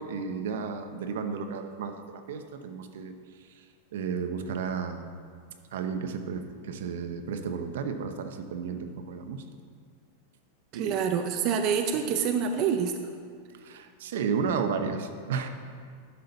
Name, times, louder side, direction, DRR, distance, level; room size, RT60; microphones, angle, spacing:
voice 1, 0.0-3.1 3.9-5.1 5.7-9.4 10.7-11.0 11.3-11.5 13.6-15.5, right 6 dB, 75° right, 7 dB, 0.8 m, -33 dB
voice 2, 10.7-12.9, right 7 dB, 35° right, 6 dB, 0.5 m, -26 dB
11.0 x 6.8 x 4.0 m, 2.2 s
supercardioid pair, 160°, 0 cm